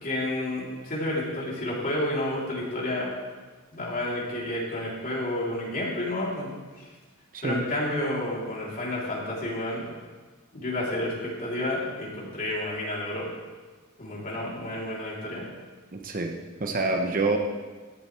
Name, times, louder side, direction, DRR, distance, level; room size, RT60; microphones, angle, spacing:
voice 1, 0.0-3.1 3.7-6.5 6.8-6.9 7.4-9.8 10.5-13.3 14.0-15.5, left 1 dB, 40° left, -5 dB, 3.6 m, -30 dB
voice 2, 7.3-7.6 15.9-16.3 16.6-17.4, right 3 dB, 40° right, 3 dB, 1.0 m, -26 dB
16.0 x 10.5 x 3.4 m, 1.4 s
head